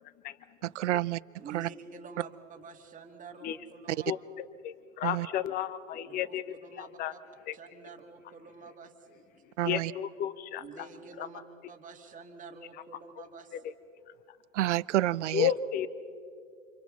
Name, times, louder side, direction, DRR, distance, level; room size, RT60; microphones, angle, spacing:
voice 1, 0.6-1.2 1.5-1.7 3.9-4.0 5.0-5.3 9.6-9.9 14.5-15.5, right 15 dB, 65° right, 20 dB, 0.5 m, -29 dB
voice 2, 1.4-4.1 6.0-7.2 7.5-9.5 10.6-11.4 11.7-13.7, right 5 dB, 20° right, 4 dB, 2.1 m, -48 dB
voice 3, 4.1-6.4 6.8-7.1 7.5-7.6 9.6-10.9 11.2-11.3 15.3-15.9, left 10 dB, 25° left, 15 dB, 0.8 m, -32 dB
30.0 x 27.0 x 4.1 m, 2.2 s
figure-of-eight pair, 105°, 39 cm